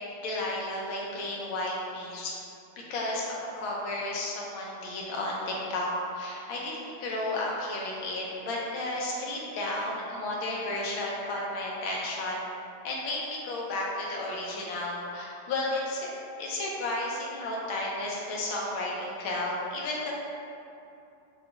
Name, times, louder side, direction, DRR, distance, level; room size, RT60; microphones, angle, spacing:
voice 1, 0.0-2.3 2.9-12.4 12.8-16.1 16.4-20.1, left 2 dB, 80° left, -3 dB, 1.5 m, -33 dB
4.9 x 2.3 x 3.9 m, 2.7 s
omnidirectional pair, 2.2 m